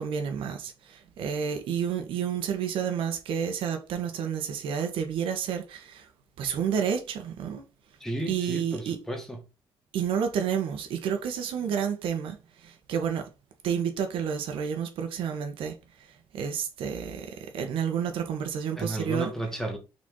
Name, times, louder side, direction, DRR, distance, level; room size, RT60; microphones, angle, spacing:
voice 1, 0.0-6.1 6.4-7.6 8.3-9.0 9.9-13.3 13.6-15.7 16.3-19.3, right 7 dB, 65° right, 1.4 m, -30 dB
voice 2, 8.0-9.4 18.8-19.8, right 1 dB, 5° left, 1.5 m, -33 dB
6.0 x 4.2 x 3.8 m
cardioid pair, 170°, 10 cm